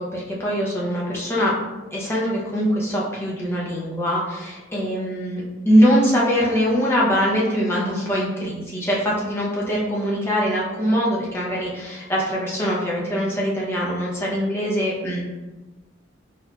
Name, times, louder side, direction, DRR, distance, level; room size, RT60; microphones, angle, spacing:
voice 1, 0.0-1.6 1.9-15.2, equal, 15° left, -5 dB, 0.6 m, -22 dB
4.1 x 2.6 x 2.2 m, 1.1 s
head